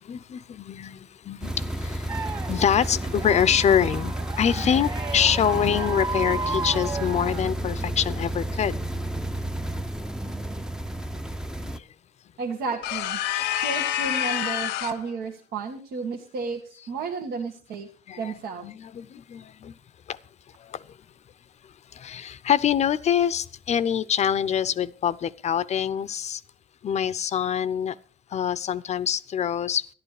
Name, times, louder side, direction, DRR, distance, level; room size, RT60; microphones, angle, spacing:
voice 1, 0.1-2.1 2.5-8.8 10.2-10.3 13.4-13.5 18.1-18.3 18.6-19.7 20.7-20.8 22.0-26.4 26.8-27.9 28.3-29.9, left 8 dB, 40° left, 0.6 m, -25 dB
sound 1, 1.4-11.8, right 1 dB, 5° right, 0.6 m, -31 dB
sound 2, 2.1-7.5, right 3 dB, 25° right, 1.7 m, -33 dB
voice 2, 12.4-13.2 13.6-17.9 18.2-18.7, right 4 dB, 75° right, 1.6 m, -32 dB
sound 3, 12.8-15.1, left 12 dB, 85° left, 0.6 m, -27 dB
11.5 x 11.5 x 4.8 m
cardioid pair, 110°, 17 cm